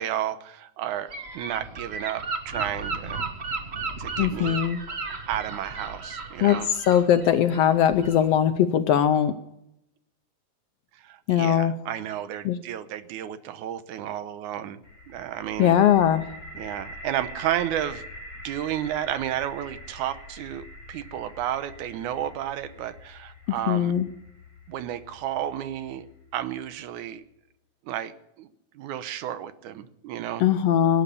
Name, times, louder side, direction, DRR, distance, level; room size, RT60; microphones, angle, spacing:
voice 1, 0.0-3.3 4.0-4.6 5.3-6.7 11.0-14.8 15.1-15.8 16.5-18.0 18.4-24.0 24.7-26.1 26.3-27.2 27.9-28.5 28.8-30.4, right 11 dB, 85° right, 12 dB, 2.4 m, -32 dB
Gull seagull / Wind, 1.1-8.4, right 4 dB, 55° right, 0.6 m, -34 dB
voice 2, 4.2-4.8 6.4-9.3 11.3-11.7 12.4-12.6 15.6-16.2 23.7-24.1 30.4-31.0, left 9 dB, 75° left, 10 dB, 1.5 m, -20 dB
sound 1, 14.8-26.7, left 1 dB, 50° left, 3.5 m, -44 dB
18.0 x 9.7 x 6.9 m, 0.83 s
omnidirectional pair, 3.4 m